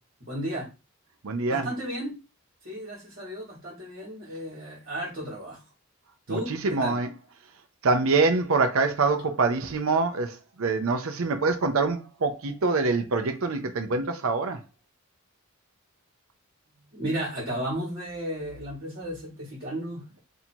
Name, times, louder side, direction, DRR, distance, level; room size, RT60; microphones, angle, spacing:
voice 1, 0.2-0.7 1.5-2.1 2.6-5.6 6.3-7.0 16.9-20.0, right 1 dB, 45° right, 1.6 m, -34 dB
voice 2, 1.2-1.7 6.3-7.1 7.8-14.6, right 3 dB, 70° right, 0.6 m, -25 dB
2.8 x 2.7 x 4.3 m
head